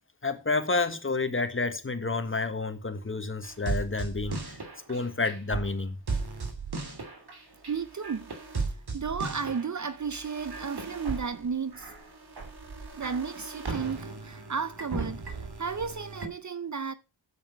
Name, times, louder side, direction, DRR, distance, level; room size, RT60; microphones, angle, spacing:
voice 1, 0.2-6.0, left 3 dB, 25° left, 1.6 m, -30 dB
sound 1, 3.4-16.3, right 4 dB, 55° right, 2.8 m, -37 dB
voice 2, 7.7-8.3 8.9-11.9 13.0-16.9, right 6 dB, 40° right, 0.7 m, -33 dB
8.7 x 7.5 x 5.9 m
cardioid pair, 60°, 46 cm